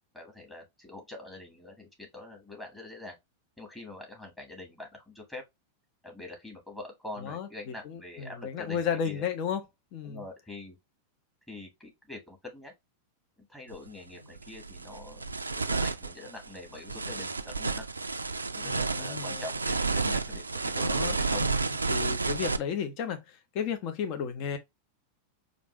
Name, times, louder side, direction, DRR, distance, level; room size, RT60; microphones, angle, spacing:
voice 1, 0.1-3.2 3.6-5.4 6.0-9.3 10.0-10.8 11.5-12.7 13.5-15.2 15.5-17.9 18.5-21.5, left 2 dB, 10° left, 1.5 m, -44 dB
voice 2, 7.2-9.6 9.9-10.2 18.6-19.4 20.7-24.6, left 7 dB, 45° left, 0.8 m, -34 dB
sound 1, 13.7-13.9 14.4-22.6, right 3 dB, 80° right, 0.3 m, -31 dB
5.0 x 2.6 x 3.0 m
figure-of-eight pair, 90°, 0 cm